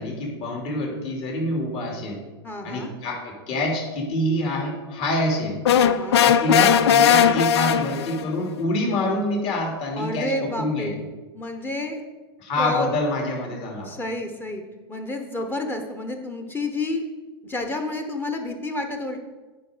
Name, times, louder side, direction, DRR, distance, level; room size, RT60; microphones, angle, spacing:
voice 1, 0.0-2.2 2.6-5.6 6.2-10.9 12.4-13.9, left 1 dB, 45° left, 0 dB, 2.7 m, -26 dB
voice 2, 2.4-2.9 5.8-6.2 9.9-11.0 11.3-12.0 12.5-12.9 13.8-14.6 14.9-17.0 17.4-19.2, left 2 dB, 15° left, 4 dB, 1.0 m, -29 dB
sound 1, 5.6-8.3, left 9 dB, 80° left, 0.5 m, -18 dB
9.3 x 5.3 x 5.0 m, 1.3 s
hypercardioid pair, 115°, 14 cm